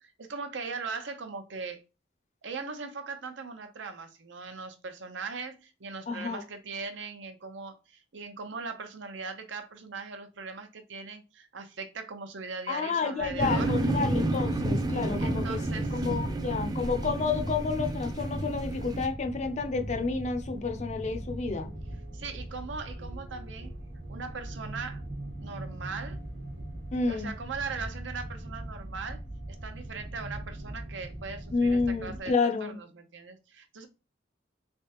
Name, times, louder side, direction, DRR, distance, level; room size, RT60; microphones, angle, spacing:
voice 1, 0.0-1.8 2.4-13.7 15.2-15.9 22.1-23.7 24.1-25.0 25.4-26.2 27.0-29.2 29.5-32.3 32.6-33.9, right 4 dB, 80° right, 0.7 m, -39 dB
voice 2, 6.1-6.4 12.7-21.7 26.9-27.3 31.5-32.8, left 4 dB, 40° left, 0.5 m, -30 dB
sound 1, 13.2-32.2, right 1 dB, 55° right, 1.2 m, -40 dB
sound 2, 13.4-19.1, right 2 dB, 20° right, 0.3 m, -30 dB
3.4 x 3.2 x 2.9 m
head